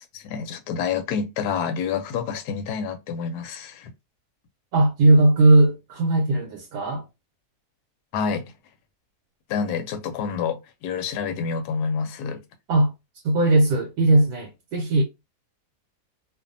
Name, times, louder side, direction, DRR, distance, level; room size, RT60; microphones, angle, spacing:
voice 1, 0.1-3.9 8.1-8.4 9.5-12.4, left 6 dB, 85° left, 1.1 m, -28 dB
voice 2, 4.7-7.0 12.7-12.9 13.2-15.0, right 2 dB, 75° right, 1.1 m, -18 dB
2.6 x 2.4 x 2.5 m
omnidirectional pair, 1.6 m